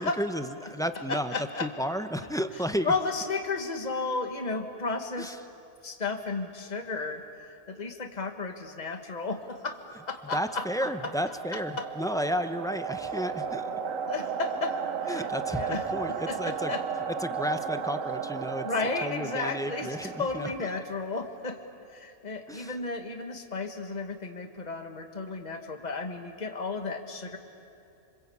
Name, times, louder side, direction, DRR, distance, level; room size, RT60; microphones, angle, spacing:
voice 1, 0.0-1.3 1.6-2.9 5.2-5.3 10.3-13.8 15.1-16.7 17.2-18.7 19.0-20.5 22.5-22.7, equal, 5° left, 8 dB, 0.7 m, -32 dB
voice 2, 1.1-1.7 2.8-5.4 5.8-7.2 7.7-9.8 10.1-10.9 11.5-11.9 14.1-16.8 18.6-21.6 21.9-27.4, left 3 dB, 35° left, 5 dB, 1.7 m, -33 dB
sound 1, 10.0-20.8, right 6 dB, 85° right, 1.3 m, -35 dB
26.5 x 25.5 x 8.6 m, 2.6 s
omnidirectional pair, 1.3 m